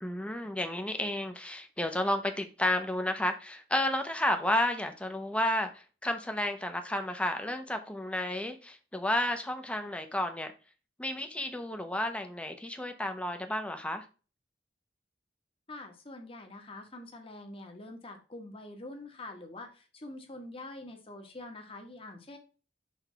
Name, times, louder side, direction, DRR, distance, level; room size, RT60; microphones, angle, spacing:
voice 1, 0.0-10.5 11.0-14.0, left 1 dB, 5° left, 0.8 m, -32 dB
voice 2, 15.7-22.4, left 2 dB, 35° left, 1.3 m, -45 dB
5.9 x 3.4 x 4.6 m
head